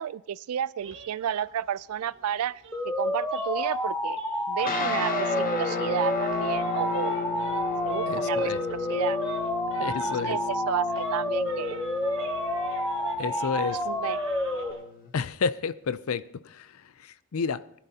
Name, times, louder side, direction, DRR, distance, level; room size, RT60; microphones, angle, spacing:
voice 1, 0.0-4.2 4.5-7.2 7.9-9.2 9.8-10.4 10.7-11.8 13.9-14.2, right 9 dB, 80° right, 0.3 m, -32 dB
sound 1, 0.8-5.9 6.1-10.6 10.9-14.8, right 3 dB, 60° right, 1.5 m, -45 dB
sound 2, 2.7-14.7, left 1 dB, 5° left, 0.8 m, -29 dB
sound 3, 4.6-15.1, left 5 dB, 40° left, 1.0 m, -34 dB
voice 2, 8.1-8.6 9.8-10.4 13.2-13.8 15.1-17.7, left 5 dB, 70° left, 0.5 m, -31 dB
20.0 x 11.5 x 2.8 m
head